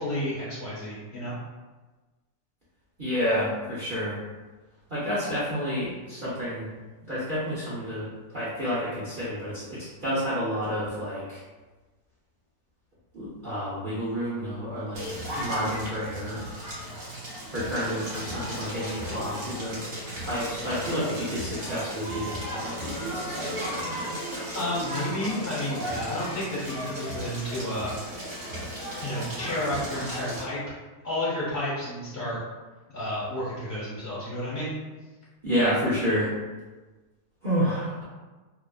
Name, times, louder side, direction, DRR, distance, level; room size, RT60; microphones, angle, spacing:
voice 1, 0.0-1.4 24.5-27.9 29.0-30.6 31.0-32.4 32.9-34.7, left 1 dB, 45° left, -8 dB, 1.1 m, -31 dB
voice 2, 3.0-4.2 4.9-6.7 7.1-11.4 13.1-15.0 15.3-16.4 17.5-19.8 20.2-24.1 35.4-36.3 37.4-38.0, equal, 70° right, -10 dB, 0.4 m, -30 dB
Crackle, 14.9-30.4, equal, 45° right, 1.3 m, -35 dB
2.8 x 2.4 x 2.3 m, 1.2 s
omnidirectional pair, 1.8 m